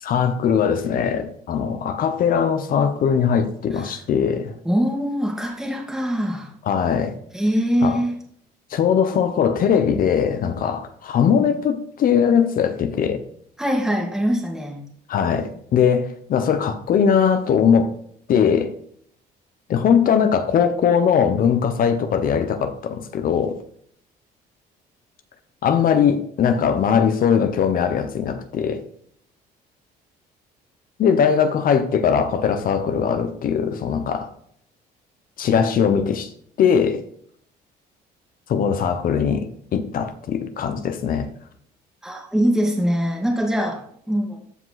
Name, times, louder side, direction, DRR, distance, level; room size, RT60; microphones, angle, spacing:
voice 1, 0.0-4.5 6.7-7.1 7.8-8.0 8.7-13.2 15.1-17.9 18.3-18.7 19.7-23.6 25.6-28.8 31.0-34.3 35.4-36.3 36.6-37.0 38.5-41.3, left 7 dB, 55° left, 1.2 m, -20 dB
voice 2, 4.6-6.5 7.3-8.1 13.6-14.8 42.0-44.4, equal, 5° right, 2.1 m, -23 dB
14.0 x 4.9 x 4.1 m
cardioid pair, 110°, 17 cm